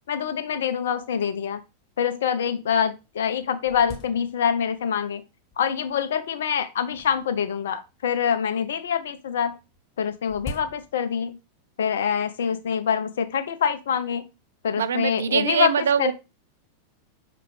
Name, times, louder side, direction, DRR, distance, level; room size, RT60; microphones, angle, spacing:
voice 1, 0.1-1.6 2.0-5.2 5.6-9.5 10.0-11.4 11.8-14.2 14.6-16.1, left 7 dB, 60° left, 0.6 m, -25 dB
sound 1, 0.7-0.8 1.0-1.1 1.8-1.9 2.5-2.6 3.0-4.8 5.5-6.0 6.9-8.2 9.5-11.3, left 3 dB, 25° left, 1.3 m, -42 dB
voice 2, 14.8-16.1, right 8 dB, 65° right, 0.3 m, -23 dB
5.9 x 2.5 x 3.2 m
figure-of-eight pair, 90°, 0 cm